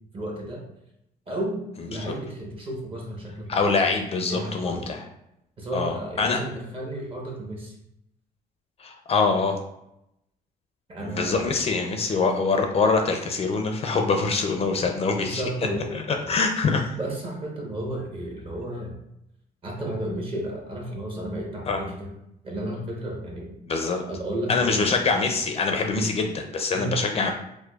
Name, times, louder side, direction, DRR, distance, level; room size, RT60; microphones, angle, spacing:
voice 1, 0.1-0.6 1.3-1.6 1.9-3.6 4.3-4.9 5.6-7.7 10.9-11.6 15.1-16.3 17.0-18.9 19.6-22.1 22.4-23.5 23.8-24.9 25.9-26.1 26.7-27.0, right 1 dB, 35° right, -1 dB, 1.0 m, -32 dB
voice 2, 3.5-5.0 5.7-6.4 8.8-9.6 11.0-16.9 21.7-21.8 23.7-24.0 24.5-27.3, left 4 dB, 35° left, 4 dB, 0.4 m, -24 dB
4.8 x 2.0 x 2.3 m, 0.83 s
cardioid pair, 110°, 17 cm